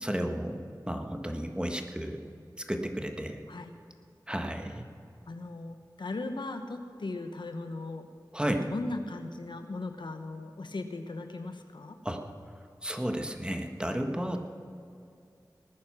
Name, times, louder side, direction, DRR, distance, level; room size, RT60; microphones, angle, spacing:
voice 1, 0.0-0.6 0.9-2.2 2.6-3.4 4.3-4.8 8.3-8.7 12.0-12.2 12.8-14.4, equal, 10° right, 4 dB, 1.4 m, -32 dB
voice 2, 5.3-8.1 8.6-12.0, left 2 dB, 90° left, 7 dB, 1.0 m, -38 dB
19.0 x 9.6 x 6.1 m, 2.5 s
wide cardioid pair, 40°, 8 cm